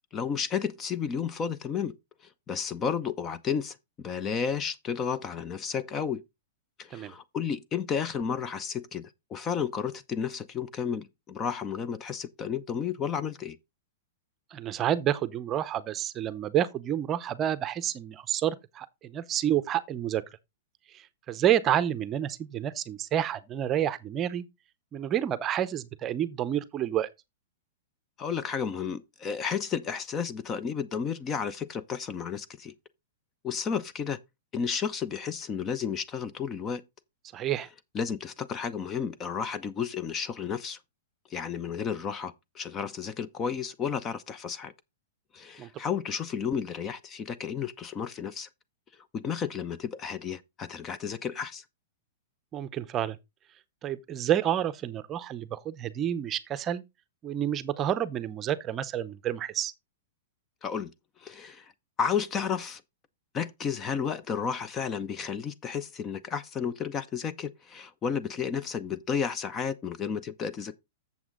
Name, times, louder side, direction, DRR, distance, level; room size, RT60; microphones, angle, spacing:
voice 1, 0.1-1.9 2.5-6.2 6.8-13.6 28.2-32.7 33.4-34.2 34.5-36.8 37.9-40.8 41.3-44.7 45.3-48.5 49.1-51.6 60.6-60.9 61.2-61.7 62.0-62.8 63.3-70.7, left 7 dB, 20° left, 0.6 m, -32 dB
voice 2, 14.5-20.2 20.9-24.4 24.9-27.1 37.3-37.7 45.6-45.7 52.5-53.2 53.8-56.8 57.2-59.7, right 10 dB, 25° right, 0.7 m, -29 dB
8.0 x 7.2 x 3.8 m
hypercardioid pair, 150°, 0 cm